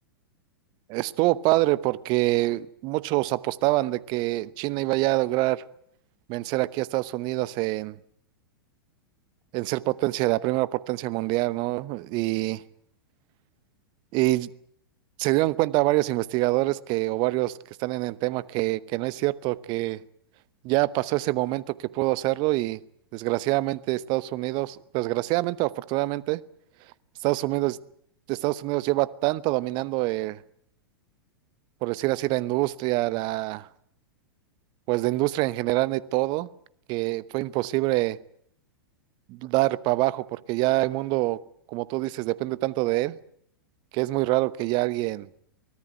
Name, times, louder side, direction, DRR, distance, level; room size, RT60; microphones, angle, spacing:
voice 1, 0.9-5.6 6.3-8.0 9.5-12.6 14.1-14.5 15.2-20.0 20.6-22.8 23.1-26.4 27.2-27.8 28.3-30.4 31.8-33.7 34.9-36.5 36.9-38.2 39.3-41.4 41.7-43.2 43.9-45.3, right 19 dB, 40° right, 1.0 m, -25 dB
24.0 x 17.5 x 9.3 m
figure-of-eight pair, 100°, 12 cm